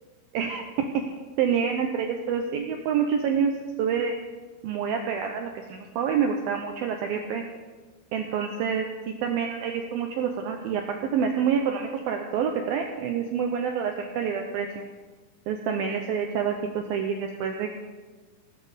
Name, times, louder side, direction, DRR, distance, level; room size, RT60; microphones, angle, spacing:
voice 1, 0.3-1.1 1.4-3.5 3.8-4.2 4.6-7.4 8.1-14.8 15.5-17.7, right 7 dB, 85° right, 4 dB, 2.1 m, -27 dB
16.0 x 13.0 x 5.1 m, 1.3 s
omnidirectional pair, 5.5 m